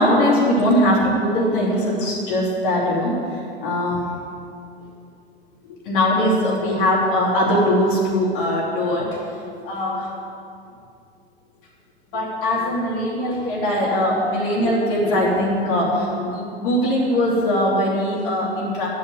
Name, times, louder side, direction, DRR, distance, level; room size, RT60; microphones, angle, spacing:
voice 1, 0.0-4.1 5.6-9.2 9.6-10.1 12.1-18.9, left 1 dB, 60° left, -4 dB, 3.1 m, -21 dB
11.0 x 8.5 x 8.3 m, 2.4 s
figure-of-eight pair, 80°, 30 cm